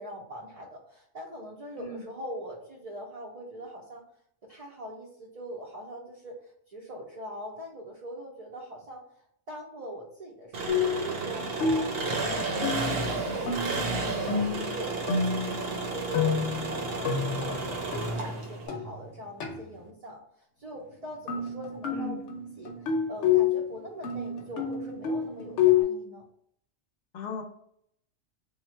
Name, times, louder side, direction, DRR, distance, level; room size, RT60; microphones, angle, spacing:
voice 1, 0.0-4.0 4.4-6.3 6.7-9.0 9.5-16.3 16.7-20.2 20.6-22.2 22.6-26.2, right 1 dB, 40° right, -3 dB, 0.6 m, -42 dB
Engine, 10.5-18.7, right 3 dB, 60° right, 0.9 m, -32 dB
sound 1, 10.7-11.1 11.6-12.0 12.6-13.1 13.5-13.8 14.3-15.6 16.1-19.0 19.4-19.6 21.3-23.7 24.0-25.8, left 7 dB, 90° left, 1.0 m, -28 dB
voice 2, 21.9-22.2 27.1-27.4, left 4 dB, 50° left, 3 dB, 0.7 m, -37 dB
3.5 x 2.3 x 4.3 m, 0.69 s
omnidirectional pair, 1.2 m